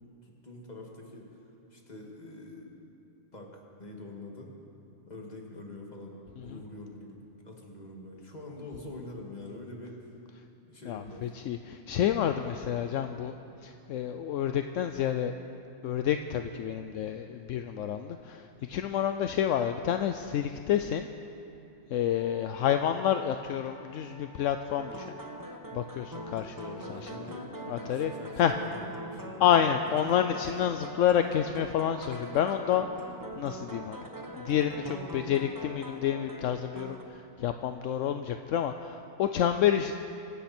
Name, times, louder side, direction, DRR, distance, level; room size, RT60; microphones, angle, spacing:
voice 1, 0.2-1.4 1.7-2.7 3.3-4.5 5.1-7.2 7.4-10.2 10.6-11.3 26.8-29.5, left 2 dB, 30° left, -1 dB, 2.2 m, -45 dB
voice 2, 10.9-13.3 13.6-15.3 15.8-21.1 21.9-25.2 25.7-27.1 27.7-28.1 28.4-28.5 29.4-32.9 33.4-34.1 34.4-39.9, left 9 dB, 75° left, 7 dB, 0.9 m, -29 dB
Wind instrument woodwind instrument, 22.1-27.1, left 2 dB, 65° right, 3.0 m, -54 dB
sound 1, 24.8-37.0, right 1 dB, 15° right, 0.9 m, -42 dB
25.0 x 12.5 x 4.4 m, 2.9 s
omnidirectional pair, 1.4 m